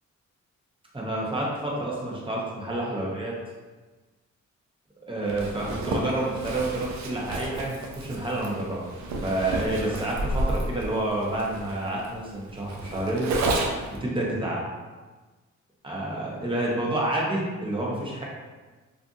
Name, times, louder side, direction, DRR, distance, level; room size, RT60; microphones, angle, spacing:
voice 1, 0.9-3.3 5.1-8.8 9.2-13.3 14.0-14.6 15.8-18.2, right 1 dB, 15° right, -4 dB, 0.8 m, -29 dB
Zipper (clothing), 5.3-14.0, right 2 dB, 70° right, 0.5 m, -31 dB
2.5 x 2.4 x 2.5 m, 1.3 s
cardioid pair, 65°, 29 cm